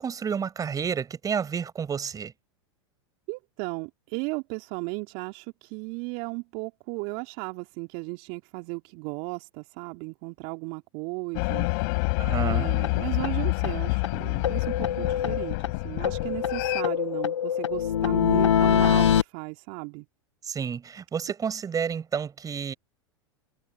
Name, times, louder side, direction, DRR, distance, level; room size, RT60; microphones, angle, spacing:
voice 1, 0.0-2.3 12.2-12.7 20.5-22.7, right 7 dB, 25° right, 6.9 m, -30 dB
voice 2, 3.3-11.7 12.4-15.6 15.8-20.1, right 30 dB, 50° right, 2.6 m, -35 dB
sound 1, 11.3-16.8, left 31 dB, 55° left, 4.3 m, -28 dB
sound 2, 12.8-12.9 13.2-13.3 13.6-13.7 14.0-14.1 14.4-15.7 16.0-19.2, left 9 dB, 80° left, 0.8 m, -24 dB
hypercardioid pair, 95°, 15 cm